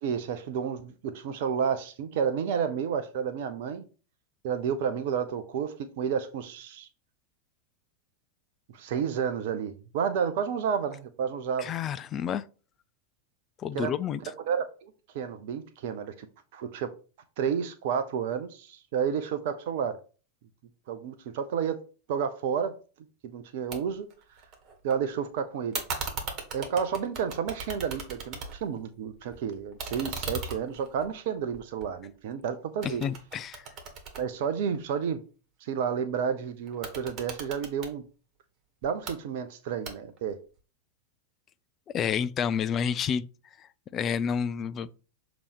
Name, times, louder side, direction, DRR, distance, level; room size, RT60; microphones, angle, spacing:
voice 1, 0.0-3.8 4.4-6.9 8.7-11.7 13.7-13.9 14.5-16.3 16.5-16.9 17.4-20.0 20.9-21.8 22.1-22.8 23.3-24.1 24.8-25.8 26.5-33.0 34.2-35.2 35.6-38.0 38.8-40.4, right 7 dB, 50° right, 0.6 m, -31 dB
voice 2, 11.6-12.4 13.6-14.2 32.8-33.6 41.9-43.3 43.6-43.7 43.9-44.9, left 7 dB, 30° left, 0.4 m, -29 dB
sound 1, 23.7-23.8 24.1-24.9 25.7-28.8 29.1-32.4 32.8-35.0 36.7-37.9 38.8-39.2 39.8-40.3, right 4 dB, 35° right, 1.8 m, -38 dB
6.8 x 3.0 x 5.2 m
figure-of-eight pair, 90°, 0 cm